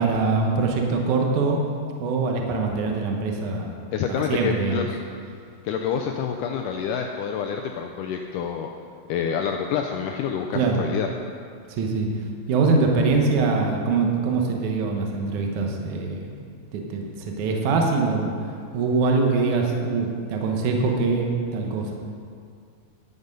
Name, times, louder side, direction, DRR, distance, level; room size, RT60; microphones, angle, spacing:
voice 1, 0.0-1.6 2.0-3.7 4.1-4.9 10.5-10.8 11.7-12.1 12.5-16.3 16.7-18.3 18.7-21.9, right 4 dB, 65° right, 1 dB, 2.2 m, -23 dB
voice 2, 3.9-4.8 5.6-8.7 9.1-11.1, left 7 dB, 85° left, 3 dB, 1.8 m, -27 dB
11.0 x 8.1 x 5.3 m, 2.3 s
omnidirectional pair, 4.2 m